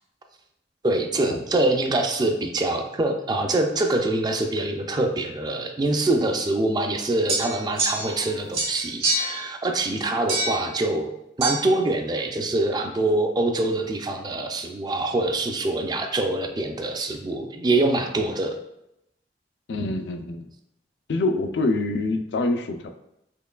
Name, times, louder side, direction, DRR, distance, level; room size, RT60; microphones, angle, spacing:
voice 1, 0.8-11.1 11.4-18.6, right 2 dB, 25° right, 4 dB, 0.3 m, -24 dB
sound 1, 7.3-8.3 8.5-9.4 10.3-10.7 11.4-11.6, right 2 dB, 60° right, 1.5 m, -25 dB
voice 2, 19.7-20.5 21.1-22.9, left 2 dB, 80° left, 7 dB, 0.4 m, -25 dB
4.4 x 3.0 x 2.3 m, 0.81 s
head